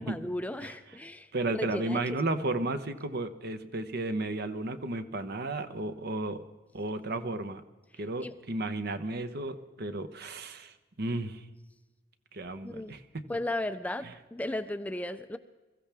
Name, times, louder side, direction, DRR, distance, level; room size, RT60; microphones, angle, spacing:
voice 1, 0.0-2.2 8.2-8.3 12.6-12.9 13.3-15.4, left 1 dB, 10° left, 10 dB, 0.4 m, -35 dB
voice 2, 1.3-6.4 6.7-7.6 8.0-11.4 12.3-13.0, right 2 dB, 55° right, 10 dB, 0.9 m, -33 dB
23.0 x 14.5 x 3.5 m, 1.2 s
head